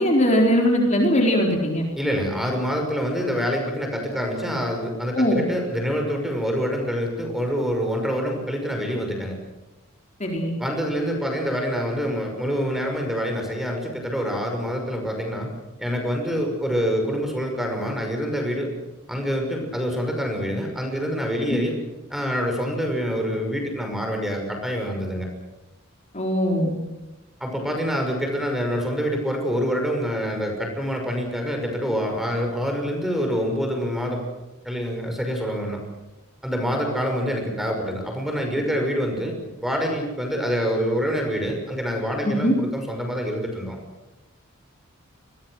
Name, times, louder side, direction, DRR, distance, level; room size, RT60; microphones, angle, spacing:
voice 1, 0.0-1.8 5.1-5.4 10.2-10.5 21.5-21.6 26.1-26.8 42.2-42.5, equal, 35° left, 0 dB, 4.3 m, -20 dB
voice 2, 2.0-9.4 10.6-15.5 15.8-18.7 19.1-21.8 22.1-25.3 27.4-34.2 34.6-35.8 36.4-39.3 39.6-43.8, equal, ahead, 3 dB, 5.9 m, -26 dB
28.0 x 22.5 x 6.5 m, 1.1 s
head